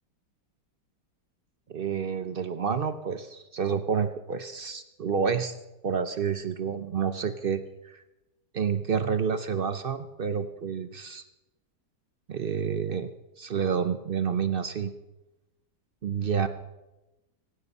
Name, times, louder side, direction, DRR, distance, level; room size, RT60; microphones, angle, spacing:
voice 1, 1.7-5.5 5.8-8.0 8.5-11.2 12.3-13.1 13.4-14.9 16.0-16.5, right 6 dB, 55° right, 10 dB, 0.6 m, -29 dB
24.5 x 9.8 x 5.5 m, 1.0 s
omnidirectional pair, 1.9 m